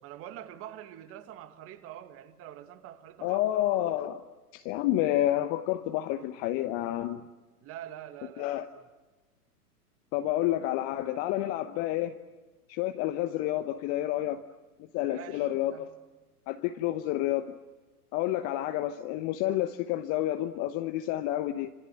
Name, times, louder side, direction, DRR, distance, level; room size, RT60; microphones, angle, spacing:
voice 1, 0.0-3.4 7.6-8.8 15.1-15.9, right 11 dB, 30° right, 2.2 m, -45 dB
voice 2, 3.2-4.2 4.5-7.2 8.4-8.6 10.1-12.1 12.7-14.4 14.8-15.9 16.5-17.6 18.1-21.7, left 14 dB, 30° left, 1.1 m, -29 dB
27.0 x 27.0 x 7.8 m
figure-of-eight pair, 110°, 46 cm